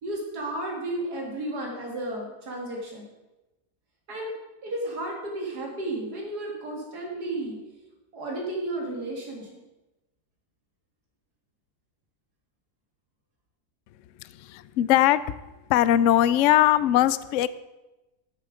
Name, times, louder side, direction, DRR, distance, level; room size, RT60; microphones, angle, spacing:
voice 1, 0.0-3.1 4.1-4.3 4.6-7.6 8.1-9.6, right 1 dB, 75° right, -1 dB, 2.4 m, -33 dB
voice 2, 14.2-15.2 15.7-17.5, left 12 dB, 70° left, 16 dB, 0.7 m, -20 dB
15.0 x 7.0 x 5.0 m, 1.0 s
omnidirectional pair, 1.7 m